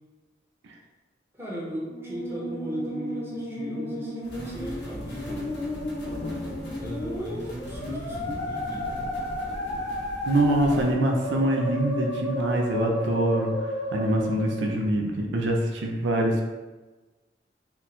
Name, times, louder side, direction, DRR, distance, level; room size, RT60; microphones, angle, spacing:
voice 1, 1.4-5.5 6.8-9.1, equal, 15° right, -6 dB, 0.8 m, -36 dB
Musical instrument, 1.8-14.8, equal, 35° left, 0.8 m, -33 dB
sound 1, 4.2-10.9, equal, 65° left, 0.7 m, -39 dB
voice 2, 10.3-16.4, right 1 dB, 90° right, 1 dB, 0.5 m, -24 dB
2.9 x 2.3 x 4.0 m, 1.2 s
head